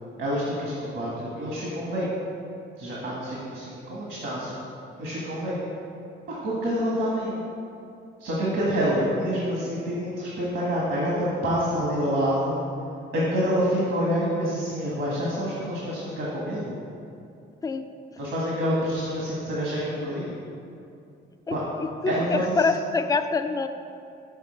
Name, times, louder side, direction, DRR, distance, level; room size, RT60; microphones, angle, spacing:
voice 1, 0.2-2.1 2.8-4.6 5.0-5.6 6.3-7.4 8.2-12.6 13.1-16.7 18.2-20.3 21.5-21.6 22.1-22.7, equal, 70° right, -6 dB, 1.6 m, -27 dB
voice 2, 22.0-23.7, left 4 dB, 20° left, 8 dB, 0.4 m, -25 dB
6.5 x 4.2 x 6.5 m, 2.6 s
cardioid pair, 90°, 20 cm